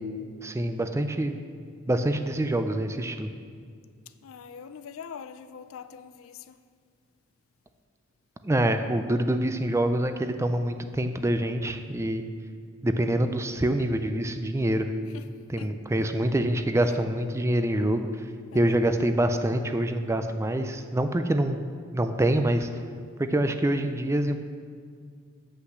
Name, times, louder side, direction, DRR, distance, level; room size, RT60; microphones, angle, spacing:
voice 1, 0.4-1.4 1.9-3.3 8.4-12.2 12.8-14.9 15.5-18.1 18.5-21.6 21.9-22.7 23.2-24.4, right 1 dB, 15° right, 0.4 m, -25 dB
voice 2, 4.2-6.6 15.1-15.3 15.6-15.7 18.5-18.8, left 7 dB, 80° left, 0.4 m, -43 dB
8.0 x 5.7 x 6.5 m
head